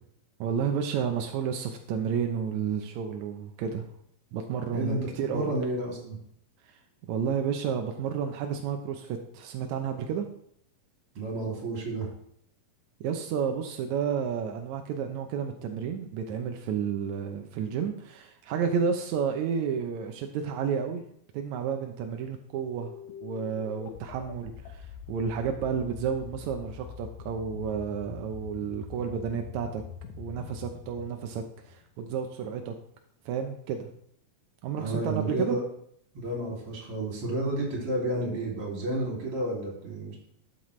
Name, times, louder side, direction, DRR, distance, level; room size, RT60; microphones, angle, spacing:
voice 1, 0.4-3.9 4.3-5.5 7.1-10.2 13.0-21.0 21.3-22.9 23.2-29.8 30.2-32.7 33.2-33.9 34.6-35.6, right 7 dB, 80° right, 4 dB, 1.6 m, -31 dB
voice 2, 5.3-6.2 11.1-12.1 34.8-35.6 36.1-40.2, right 1 dB, 40° right, -2 dB, 3.4 m, -31 dB
sound 1, 22.7-32.1, left 8 dB, 75° left, 2.5 m, -44 dB
12.0 x 7.6 x 3.2 m, 0.68 s
omnidirectional pair, 4.2 m